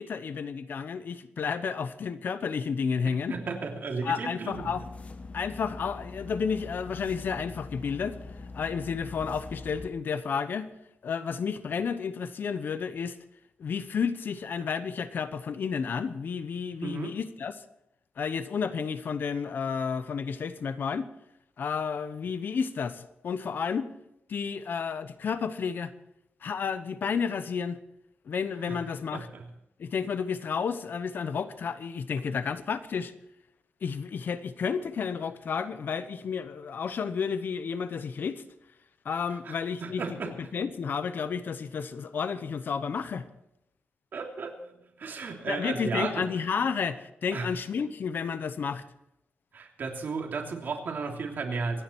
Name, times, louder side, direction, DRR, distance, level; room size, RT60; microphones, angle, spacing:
voice 1, 0.0-3.3 4.0-4.8 5.3-8.2 8.5-10.7 11.0-13.2 13.6-17.6 18.2-21.1 21.6-23.9 24.3-25.9 26.4-27.8 28.2-29.3 29.8-33.1 33.8-38.4 39.0-43.3 45.5-48.8, left 6 dB, 60° left, 12 dB, 0.9 m, -31 dB
voice 2, 3.3-4.7 16.8-17.1 28.7-28.8 29.1-29.5 39.4-39.5 39.8-40.3 44.1-44.5 45.0-46.1 47.3-47.5 49.5-51.8, right 4 dB, 60° right, 1 dB, 3.1 m, -34 dB
sound 1, 4.5-9.9, left 3 dB, 35° left, 1.1 m, -43 dB
26.0 x 10.0 x 4.6 m, 0.83 s
wide cardioid pair, 140°, 4 cm